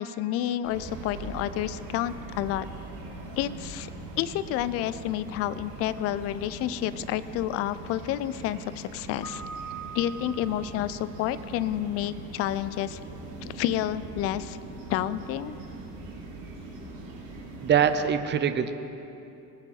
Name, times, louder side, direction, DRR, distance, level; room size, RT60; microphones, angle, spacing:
voice 1, 0.0-2.7 3.4-3.9 4.2-9.4 9.9-13.0 13.4-14.6 14.9-15.6, left 12 dB, 30° left, 15 dB, 0.4 m, -30 dB
sound 1, 0.6-18.0, right 2 dB, 65° right, 3.1 m, -41 dB
Keyboard (musical), 9.2-11.0, right 4 dB, 85° left, 1.6 m, -41 dB
voice 2, 17.6-18.7, right 8 dB, 20° right, 9 dB, 0.7 m, -23 dB
20.0 x 7.3 x 4.3 m, 2.9 s
figure-of-eight pair, 70°, 50 cm